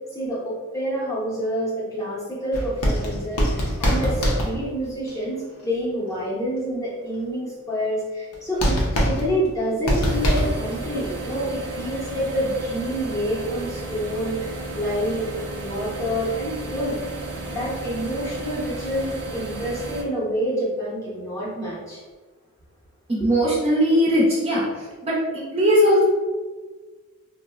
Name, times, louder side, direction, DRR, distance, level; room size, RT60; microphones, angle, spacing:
voice 1, 0.1-15.2 15.5-17.0 17.5-22.0 23.2-23.3, equal, 15° left, -7 dB, 0.6 m, -27 dB
sound 1, 2.5-5.1 8.3-8.4 8.6-10.8 11.0-11.1, equal, 80° left, 0.6 m, -23 dB
sound 2, 10.0-20.0, right 2 dB, 85° right, 0.6 m, -33 dB
voice 2, 23.1-24.7 25.0-26.0, equal, 25° right, -5 dB, 0.5 m, -19 dB
3.5 x 2.0 x 2.3 m, 1.3 s
head